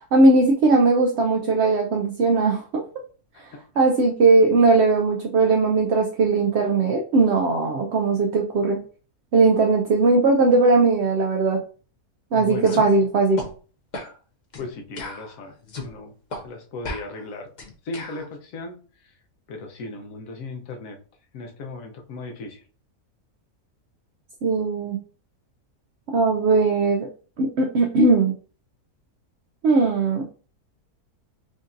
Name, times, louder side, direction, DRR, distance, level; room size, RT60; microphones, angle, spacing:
voice 1, 0.1-2.8 3.8-8.8 9.3-11.6 12.3-13.4 24.4-25.0 26.1-27.1 27.4-28.3 29.6-30.2, right 3 dB, 65° right, 2 dB, 0.6 m, -19 dB
voice 2, 12.3-12.8 14.6-15.5 15.8-17.5 17.8-18.7 19.5-21.0 21.3-22.6, left 3 dB, 65° left, 3 dB, 1.1 m, -36 dB
sound 1, 12.6-12.9 13.4-13.5 13.9-14.1 14.5-14.7 15.0-15.9 16.3-16.4 16.8-18.3, left 2 dB, 45° left, 0.6 m, -35 dB
5.0 x 2.6 x 2.5 m, 0.39 s
omnidirectional pair, 1.6 m